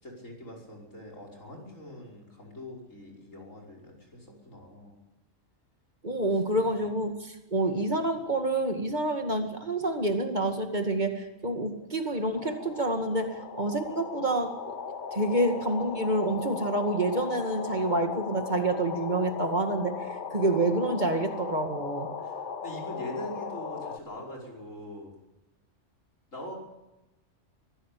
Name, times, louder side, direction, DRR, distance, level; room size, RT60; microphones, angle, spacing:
voice 1, 0.0-5.0 6.5-6.7 22.2-22.4 22.6-25.2 26.3-26.5, left 1 dB, 85° left, -1 dB, 5.9 m, -42 dB
voice 2, 6.0-14.7 15.1-22.1, right 2 dB, 35° right, 5 dB, 2.3 m, -28 dB
sound 1, 11.8-11.9 12.2-24.0, left 5 dB, 40° left, 1.1 m, -38 dB
23.5 x 16.0 x 8.6 m, 1.0 s
omnidirectional pair, 1.3 m